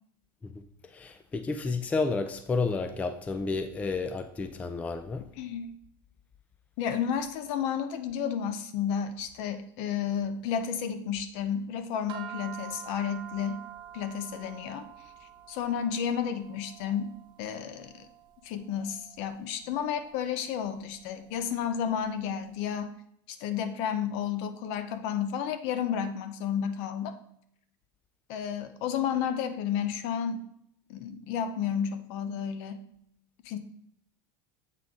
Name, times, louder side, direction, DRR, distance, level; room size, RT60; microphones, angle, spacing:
voice 1, 0.9-5.3, left 4 dB, 10° left, 8 dB, 0.3 m, -31 dB
voice 2, 5.4-5.8 6.8-13.6 13.9-14.9 15.5-18.1 18.4-22.9 23.3-27.2 28.3-30.5 30.9-32.8 33.4-33.6, left 8 dB, 60° left, 10 dB, 0.6 m, -32 dB
sound 1, 12.1-22.6, right 10 dB, 45° right, 0.6 m, -48 dB
7.6 x 3.7 x 3.6 m, 0.71 s
supercardioid pair, 140°, 11 cm